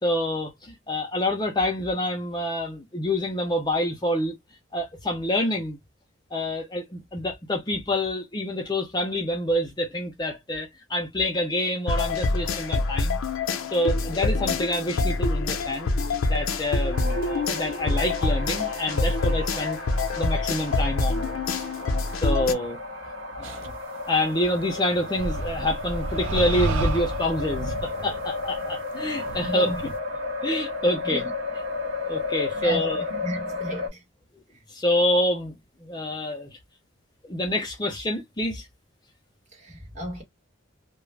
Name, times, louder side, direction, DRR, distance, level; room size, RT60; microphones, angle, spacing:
voice 1, 0.0-4.3 4.7-5.8 6.3-13.2 13.7-15.9 16.3-19.8 20.2-21.3 22.2-22.8 23.4-23.7 24.1-29.7 30.4-31.2 32.0-33.0 34.7-35.5 35.8-36.5 37.2-38.7, left 1 dB, 20° left, 0.5 m, -27 dB
sound 1, 11.9-22.5, left 3 dB, 85° left, 0.5 m, -26 dB
sound 2, 16.9-33.9, left 3 dB, 50° right, 1.0 m, -33 dB
sound 3, 23.4-23.7 25.2-30.0, right 2 dB, 70° right, 0.5 m, -31 dB
voice 2, 29.4-29.8 31.0-31.3 32.5-32.8 33.1-34.0 39.5-40.2, right 1 dB, 35° right, 1.2 m, -32 dB
2.4 x 2.0 x 3.1 m
head